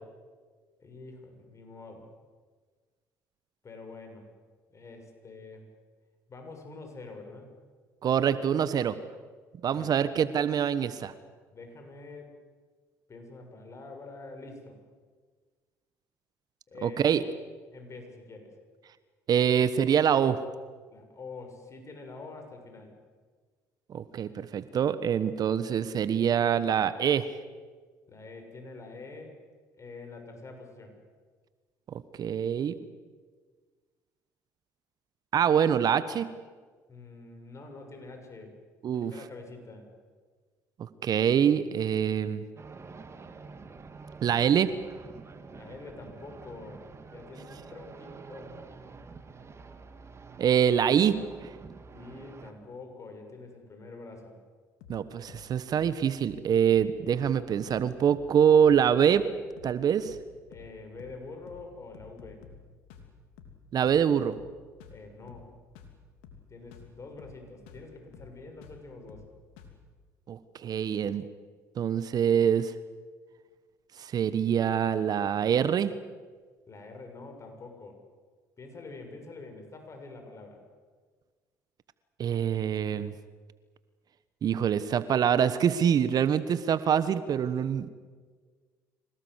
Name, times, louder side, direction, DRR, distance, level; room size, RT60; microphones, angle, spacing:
voice 1, 0.8-2.1 3.6-4.2 4.7-5.7 6.3-7.5 9.7-10.0 11.5-12.4 13.1-14.8 16.7-17.0 17.7-18.6 20.9-22.9 28.1-29.4 29.8-31.0 36.9-38.6 38.9-39.9 45.5-48.7 51.9-54.4 60.5-62.4 64.9-65.5 66.5-69.3 76.7-78.0 78.6-80.6, left 3 dB, 35° left, 4 dB, 6.7 m, -46 dB
voice 2, 8.0-9.0 9.6-11.1 16.8-17.2 19.3-20.4 23.9-27.3 31.9-32.8 35.3-36.3 38.8-39.1 40.8-42.4 44.2-44.7 50.4-51.5 54.9-59.2 59.6-60.2 63.7-64.3 70.3-71.2 71.8-72.7 74.0-75.9 82.2-83.1 84.4-87.9, right 8 dB, 50° right, 14 dB, 1.2 m, -25 dB
sound 1, 42.6-52.5, right 4 dB, 35° right, 2.5 m, -47 dB
sound 2, 54.8-55.0 55.3-55.5 55.8-56.0 56.2-56.5 56.7-56.9 57.2-57.4 57.7-57.9 58.1-58.4 58.6-58.8 59.1-59.3 59.6-59.8 60.0-60.3 60.5-60.7 61.0-61.2 61.5-61.7 61.9-62.6 62.9-63.1 63.4-63.6 63.9-64.1 64.3-64.5 64.8-65.0 65.3-65.5 65.8-66.0 66.2-66.5 66.7-66.9 67.2-67.4 67.7-67.9 68.1-68.4 68.6-68.8 69.1-69.3 69.6-69.8, left 7 dB, 80° left, 3.0 m, -51 dB
26.0 x 18.0 x 8.1 m, 1.5 s
hypercardioid pair, 60°, 8 cm